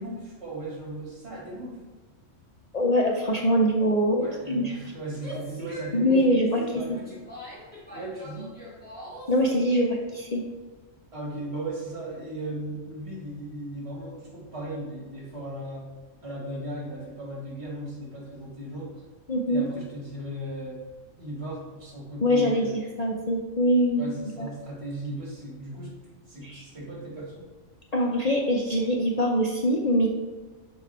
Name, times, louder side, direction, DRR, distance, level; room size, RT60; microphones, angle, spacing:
voice 1, 0.0-1.8 4.2-6.2 6.5-7.2 7.9-8.5 11.1-15.9 16.2-19.0 19.5-20.8 21.2-22.7 24.0-25.9 26.3-27.4, right 1 dB, 55° right, -3 dB, 2.4 m, -37 dB
voice 2, 2.7-4.6 5.9-6.6 9.3-10.4 19.3-19.6 22.2-22.7 23.0-24.1 24.4-24.5 26.4-26.6 27.9-30.1, equal, 45° left, -1 dB, 0.6 m, -23 dB
Female speech woman speaking / Yell, 5.1-9.4, equal, 5° left, 2.1 m, -43 dB
6.8 x 4.8 x 4.2 m, 1.4 s
omnidirectional pair, 1.3 m